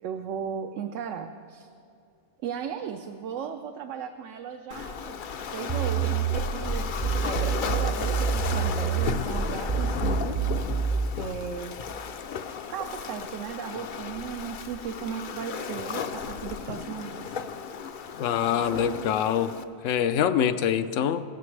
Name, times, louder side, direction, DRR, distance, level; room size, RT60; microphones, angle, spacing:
voice 1, 0.0-1.7 2.4-5.2 5.5-10.4 11.2-11.8 12.7-17.3, right 7 dB, 80° right, 6 dB, 0.9 m, -36 dB
Waves surf, 4.7-19.6, left 6 dB, 60° left, 0.6 m, -34 dB
sound 1, 5.7-11.2, right 6 dB, 45° right, 0.4 m, -27 dB
voice 2, 18.2-19.5 19.8-21.2, left 9 dB, 85° left, 11 dB, 0.9 m, -24 dB
17.0 x 13.5 x 3.2 m, 2.4 s
omnidirectional pair, 1.3 m